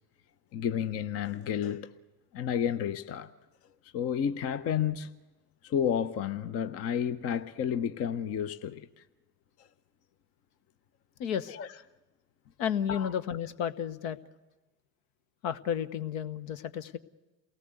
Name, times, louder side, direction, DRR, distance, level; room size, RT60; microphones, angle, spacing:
voice 1, 0.5-1.9 2.3-3.3 3.8-5.1 5.6-9.0 9.6-9.7 11.5-11.7 12.9-13.1, left 8 dB, 30° left, 0.8 m, -31 dB
voice 2, 11.2-11.6 12.6-14.2 15.4-17.0, left 8 dB, 55° left, 1.2 m, -32 dB
28.5 x 18.5 x 8.1 m
figure-of-eight pair, 75°, 48 cm